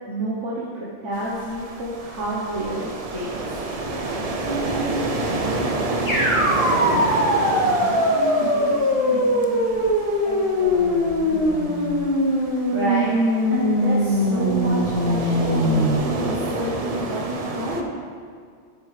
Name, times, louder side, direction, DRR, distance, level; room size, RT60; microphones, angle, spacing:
voice 1, 0.1-3.6 12.7-13.2 13.5-17.9, right 1 dB, 80° right, -6 dB, 1.4 m, -29 dB
sound 1, 1.1-17.8, right 2 dB, 45° right, 0.5 m, -29 dB
voice 2, 4.4-11.9, right 2 dB, 25° right, -6 dB, 1.9 m, -33 dB
sound 2, 6.1-16.0, equal, 40° left, 2.3 m, -21 dB
9.4 x 7.9 x 3.2 m, 2.1 s
omnidirectional pair, 1.2 m